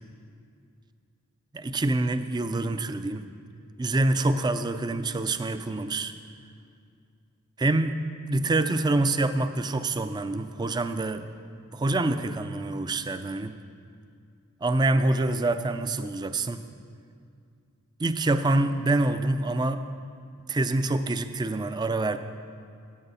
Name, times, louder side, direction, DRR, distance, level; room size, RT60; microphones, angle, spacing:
voice 1, 1.5-3.3 3.8-6.1 7.6-8.0 8.3-11.3 11.7-13.6 14.6-16.7 18.0-19.8 20.5-22.2, right 2 dB, 20° right, 10 dB, 0.3 m, -26 dB
13.5 x 8.9 x 4.2 m, 2.3 s
head